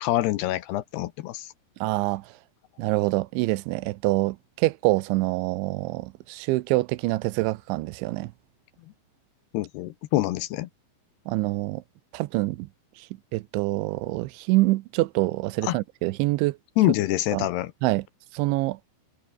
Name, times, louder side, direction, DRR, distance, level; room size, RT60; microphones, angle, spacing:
voice 1, 0.0-1.5 9.5-10.7 15.6-15.8 16.8-17.7, left 16 dB, 75° left, 2.7 m, -25 dB
voice 2, 1.8-2.3 2.8-8.3 11.3-11.8 12.1-12.7 13.0-13.1 13.3-16.6 17.3-17.5 17.8-18.1 18.3-18.8, right 20 dB, 90° right, 3.1 m, -25 dB
omnidirectional pair, 5.2 m